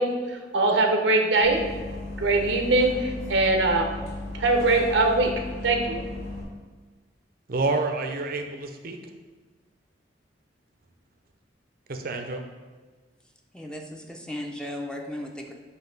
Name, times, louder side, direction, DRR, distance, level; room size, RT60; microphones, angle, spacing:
voice 1, 0.0-1.6 2.2-3.9 4.4-5.3 5.6-6.0, right 2 dB, 80° right, 3 dB, 0.9 m, -22 dB
Bus, 1.4-6.4, left 2 dB, 60° left, 1.8 m, -36 dB
voice 2, 7.5-9.0 11.9-12.4, right 3 dB, 55° right, 5 dB, 0.7 m, -28 dB
voice 3, 13.5-15.5, left 1 dB, 5° left, 1 dB, 0.6 m, -36 dB
8.0 x 2.8 x 5.9 m, 1.4 s
head